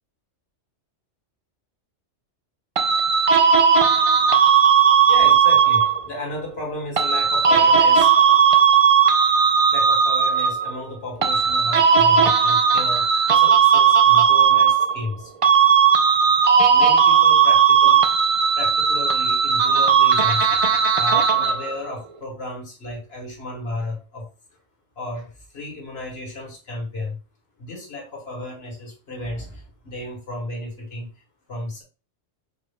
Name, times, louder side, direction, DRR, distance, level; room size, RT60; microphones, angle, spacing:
sound 1, 2.8-6.1 7.0-10.8 11.2-15.1 15.4-21.8, right 7 dB, 60° right, 0.3 m, -16 dB
voice 1, 5.1-8.1 9.7-15.3 16.6-18.1 18.6-20.5 20.9-24.3 25.0-27.2 27.6-31.1 31.5-31.8, left 1 dB, 55° left, -1 dB, 1.7 m, -33 dB
4.9 x 2.6 x 3.4 m, 0.33 s
omnidirectional pair, 1.3 m